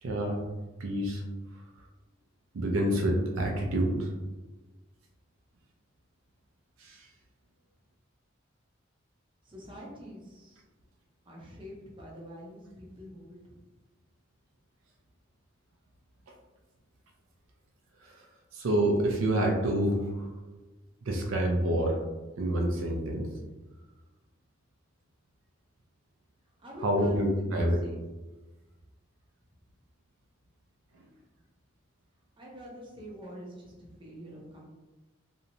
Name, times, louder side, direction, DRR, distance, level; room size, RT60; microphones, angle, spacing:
voice 1, 0.0-0.4 0.8-1.2 2.5-4.1 6.8-7.1 18.0-18.2 18.5-20.3 21.0-22.0 22.4-23.3 26.8-27.8 30.9-31.1, right 1 dB, 70° right, 1 dB, 0.4 m, -27 dB
voice 2, 9.4-10.6 11.2-13.6 26.6-28.0 32.4-34.7, equal, 25° right, -3 dB, 0.6 m, -46 dB
2.8 x 2.1 x 2.5 m, 1.1 s
head